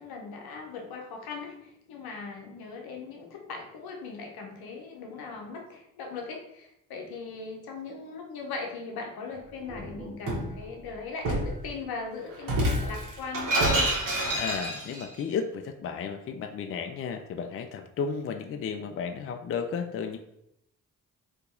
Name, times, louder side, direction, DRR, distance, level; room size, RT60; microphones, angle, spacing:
voice 1, 0.0-14.0, left 4 dB, 70° left, 2 dB, 0.8 m, -39 dB
Shatter, 9.6-10.5 11.2-11.6 12.4-15.0, right 1 dB, 55° right, 1.3 m, -27 dB
voice 2, 14.3-20.2, left 6 dB, 35° left, 7 dB, 0.4 m, -33 dB
2.8 x 2.6 x 3.6 m, 0.76 s
hypercardioid pair, 40°, 38 cm